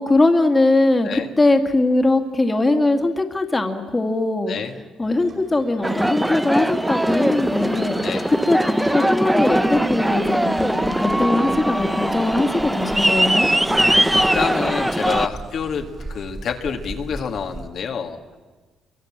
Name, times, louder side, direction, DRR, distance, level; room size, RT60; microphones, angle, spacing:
voice 1, 0.0-4.6 5.0-8.0 8.3-13.5, left 2 dB, 20° left, 5 dB, 2.5 m, -20 dB
sound 1, 5.0-16.3, right 3 dB, 55° right, 7.9 m, -48 dB
Aircraft, 5.8-15.3, right 1 dB, 5° right, 0.9 m, -20 dB
voice 2, 8.0-8.3 13.7-18.4, left 6 dB, 60° left, 4 dB, 2.1 m, -28 dB
sound 2, 9.3-17.7, right 2 dB, 25° right, 3.1 m, -39 dB
28.5 x 24.0 x 7.6 m, 1.3 s
cardioid pair, 90°, 0 cm